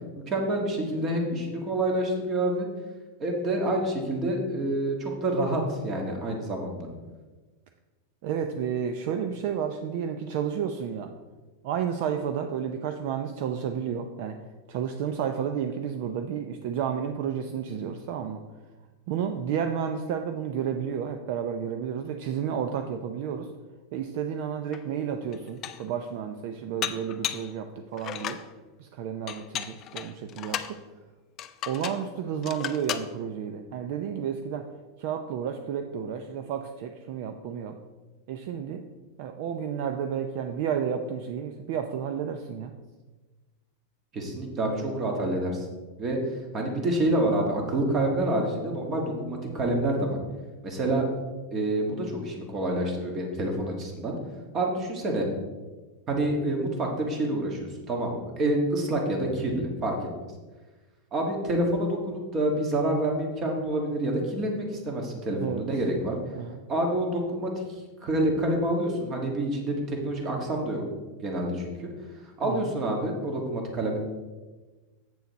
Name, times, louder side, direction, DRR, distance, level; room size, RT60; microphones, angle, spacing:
voice 1, 0.3-2.7 3.2-6.9 44.1-45.7 46.0-46.2 46.5-50.2 50.6-51.0 51.5-54.1 54.5-55.3 56.1-60.0 61.1-66.2 66.7-67.6 68.0-70.8 71.2-71.9 72.4-74.0, right 1 dB, 25° right, 2 dB, 1.6 m, -27 dB
voice 2, 8.2-11.1 11.6-14.4 14.7-18.4 19.1-23.5 23.9-28.4 28.8-30.8 31.7-34.7 35.0-37.8 38.3-38.8 39.2-42.7 65.4-65.7 66.3-66.6 72.4-72.7, right 8 dB, 50° right, 6 dB, 0.5 m, -31 dB
Dishes pots and pans, 24.7-24.8 25.3-25.9 26.8-27.5 28.0-28.5 29.3-30.8 31.4-32.1 32.4-33.1, left 10 dB, 25° left, 0.4 m, -34 dB
8.0 x 6.9 x 4.1 m, 1.3 s
supercardioid pair, 160°, 0 cm